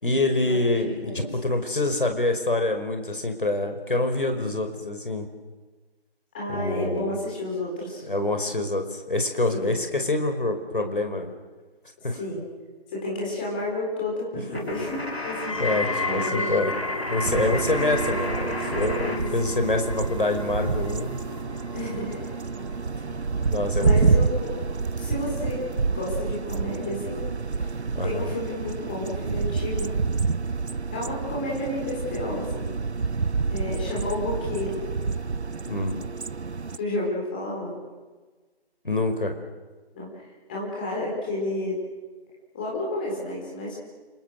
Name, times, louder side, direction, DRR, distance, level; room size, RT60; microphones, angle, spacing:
voice 1, 0.0-5.3 6.5-7.2 8.1-11.3 12.0-12.2 15.6-16.7 17.1-19.1 19.3-21.2 23.1-23.2 23.5-24.3 27.9-28.3 35.7-35.9 38.8-39.4, left 2 dB, 55° left, 6 dB, 5.3 m, -26 dB
voice 2, 0.8-1.3 6.3-8.0 9.5-9.8 12.1-12.4 12.9-16.7 19.0-19.5 21.7-22.2 23.7-24.6 24.9-27.2 28.0-30.0 30.9-32.7 33.5-34.8 36.8-37.8 39.9-41.8 42.5-43.8, left 1 dB, 10° left, -4 dB, 4.5 m, -31 dB
sound 1, 14.5-19.2 19.4-21.4, left 1 dB, 70° left, 6.0 m, -35 dB
sound 2, 15.4-26.6 26.9-27.4 28.1-28.2, left 2 dB, 30° left, 1.5 m, -35 dB
sound 3, 17.2-36.8, right 4 dB, 90° right, 0.8 m, -28 dB
30.0 x 29.0 x 6.7 m, 1.3 s
figure-of-eight pair, 170°, 32 cm